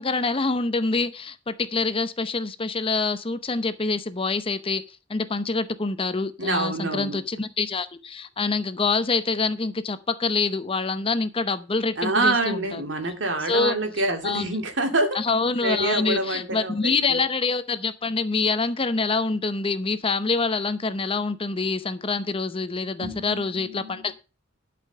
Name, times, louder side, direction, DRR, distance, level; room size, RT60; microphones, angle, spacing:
voice 1, 0.0-12.8 13.5-13.7 14.2-14.5 15.1-24.1, left 3 dB, 30° left, 0.7 m, -26 dB
voice 2, 6.4-7.2 12.0-15.2 15.6-17.2 23.0-24.1, right 2 dB, 65° right, 2.3 m, -26 dB
12.0 x 5.2 x 6.7 m
head